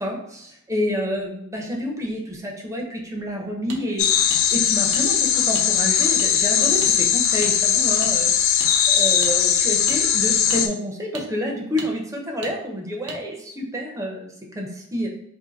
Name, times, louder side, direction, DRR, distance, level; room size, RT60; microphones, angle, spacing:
voice 1, 0.7-2.8 3.1-4.1 4.5-5.2 5.5-6.8 7.1-8.3 9.0-12.0 12.3-13.3 13.6-14.1 14.6-14.7 14.9-15.1, equal, 15° right, 0 dB, 0.5 m, -28 dB
sound 1, 3.7-3.8 4.3-4.4 4.9-5.0 5.5-5.7 6.2-6.3 6.8-6.9 7.4-7.6 8.0-8.1 8.6-8.7 9.2-9.3 9.9-10.0 10.5-10.6 11.1-11.3 11.8-11.9 12.4-12.5 13.1-13.2, right 3 dB, 85° right, 0.7 m, -35 dB
sound 2, 4.0-10.7, left 8 dB, 70° left, 0.4 m, -19 dB
2.6 x 2.6 x 3.9 m, 0.76 s
head